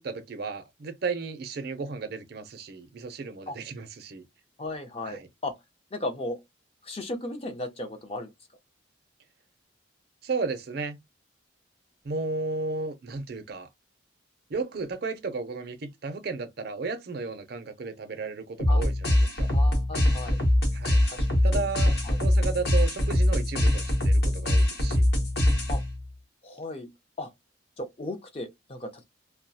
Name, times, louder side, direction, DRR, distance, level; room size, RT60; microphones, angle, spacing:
voice 1, 0.0-4.2 5.1-5.3 10.2-11.0 12.0-13.7 14.5-19.5 20.7-21.0 21.4-25.1, right 4 dB, 55° right, 0.5 m, -34 dB
voice 2, 4.6-5.5 5.9-6.4 6.8-8.3 18.7-18.9 19.5-20.4 21.1-21.7 22.0-22.2 25.7-25.8 26.4-26.9 27.2-27.3 27.8-29.0, left 2 dB, 30° left, 0.5 m, -36 dB
sound 1, 18.6-26.0, left 1 dB, 55° left, 0.8 m, -23 dB
2.3 x 2.1 x 2.6 m
head